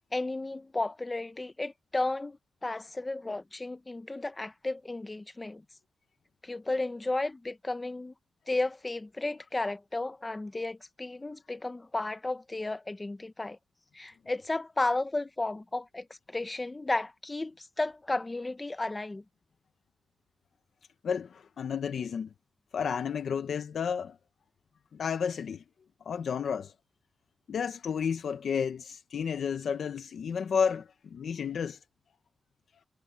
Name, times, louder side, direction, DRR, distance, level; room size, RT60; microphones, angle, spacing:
voice 1, 0.1-5.6 6.4-8.1 8.5-13.6 13.9-19.2, left 2 dB, 20° left, 1.0 m, -33 dB
voice 2, 21.0-22.3 22.7-24.2 24.9-25.6 26.0-26.7 27.5-31.8, left 7 dB, 85° left, 1.0 m, -31 dB
wide cardioid pair, 155°, 0 cm